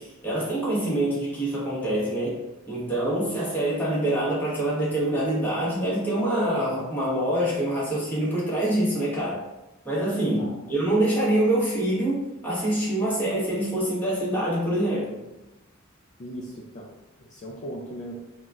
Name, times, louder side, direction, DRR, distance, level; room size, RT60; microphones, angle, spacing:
voice 1, 0.0-9.5 9.8-15.2, right 1 dB, 10° left, -7 dB, 1.0 m, -25 dB
voice 2, 10.3-10.8 16.2-16.9 17.2-18.2, equal, 35° left, -4 dB, 0.4 m, -38 dB
3.9 x 2.2 x 2.4 m, 1.0 s
head